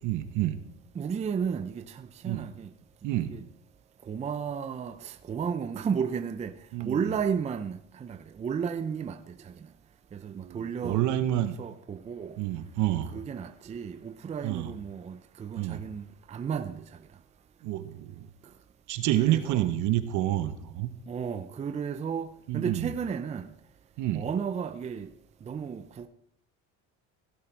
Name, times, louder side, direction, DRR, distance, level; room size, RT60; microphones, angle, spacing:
voice 1, 0.0-0.6 2.2-2.4 3.0-3.3 6.7-7.0 10.3-11.5 12.4-13.1 14.4-14.7 15.6-15.8 17.6-18.3 18.9-20.9 22.5-22.9 24.0-24.2, right 14 dB, 60° right, 1.2 m, -28 dB
voice 2, 0.9-2.7 3.3-3.4 4.1-9.7 10.1-11.1 11.6-12.4 13.1-17.0 19.2-19.7 21.1-23.5 24.1-25.1 25.4-26.1, right 6 dB, 20° right, 0.5 m, -33 dB
16.5 x 7.9 x 4.6 m
cardioid pair, 130°, 33 cm